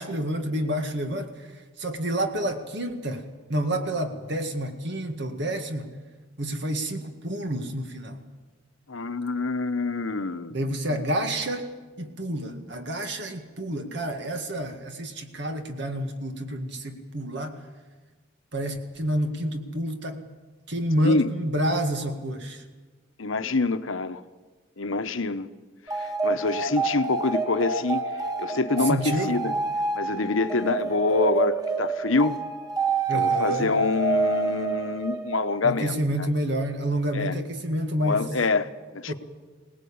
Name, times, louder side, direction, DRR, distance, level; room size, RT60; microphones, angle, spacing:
voice 1, 0.0-1.5 1.8-5.9 6.4-8.2 10.5-11.7 12.0-17.6 18.5-20.3 20.7-22.6 28.8-29.3 33.1-33.8 35.6-38.3 39.1-39.2, right 1 dB, 60° right, 2.0 m, -29 dB
voice 2, 8.9-10.6 10.9-11.0 21.0-21.3 23.2-24.2 24.8-25.5 26.0-28.0 28.4-29.5 30.0-32.4 33.1-36.3 37.1-37.4 38.0-39.1, left 3 dB, 80° left, 1.1 m, -26 dB
sound 1, 25.9-35.6, right 3 dB, 20° right, 1.5 m, -28 dB
23.5 x 19.0 x 8.7 m
head